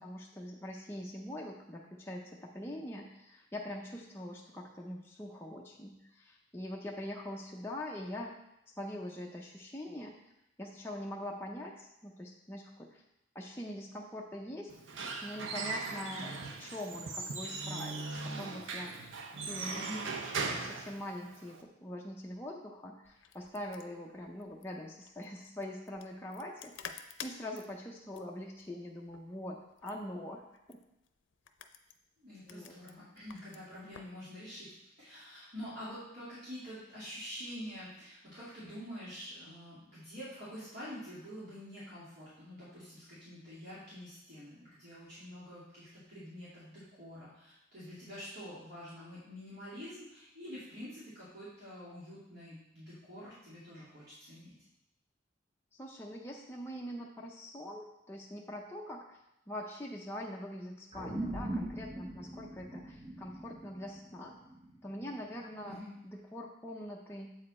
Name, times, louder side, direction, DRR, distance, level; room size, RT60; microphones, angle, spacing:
voice 1, 0.0-8.4 8.8-10.2 10.6-13.0 13.3-14.7 15.2-16.3 16.6-19.0 19.3-20.2 20.4-26.9 27.2-30.8 32.5-32.8 55.7-59.2 59.5-64.4 64.8-65.8 66.0-67.4, left 1 dB, 10° left, -2 dB, 0.5 m, -43 dB
Squeak / Wood, 14.7-21.6, right 4 dB, 80° right, 0.7 m, -39 dB
sound 1, 23.0-34.2, left 7 dB, 80° left, 0.5 m, -52 dB
voice 2, 32.2-54.5 65.6-65.9, equal, 60° right, -11 dB, 2.3 m, -47 dB
sound 2, 60.9-65.7, right 1 dB, 30° right, 0.8 m, -41 dB
7.7 x 4.9 x 4.2 m, 0.85 s
head